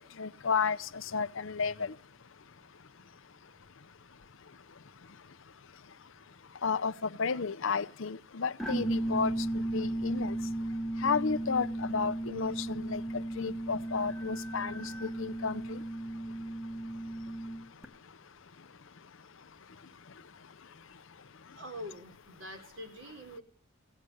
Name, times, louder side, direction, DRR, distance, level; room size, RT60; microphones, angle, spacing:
voice 1, 0.2-1.9 6.6-6.9 7.2-10.4 11.0-15.8, left 5 dB, 65° left, 0.7 m, -32 dB
sound 1, 8.6-17.8, right 1 dB, ahead, 1.3 m, -35 dB
voice 2, 21.5-23.4, equal, 60° right, 4.1 m, -44 dB
16.5 x 7.9 x 9.8 m
head